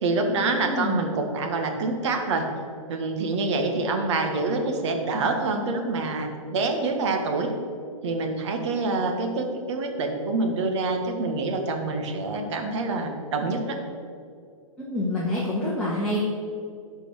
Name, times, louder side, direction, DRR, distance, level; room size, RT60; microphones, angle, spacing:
voice 1, 0.0-2.5 2.9-7.5 8.0-13.8, right 3 dB, 55° right, 4 dB, 1.6 m, -26 dB
voice 2, 0.6-1.0 14.9-16.2, left 1 dB, 5° left, -8 dB, 1.7 m, -27 dB
12.5 x 4.6 x 6.3 m, 2.4 s
hypercardioid pair, 135°, 18 cm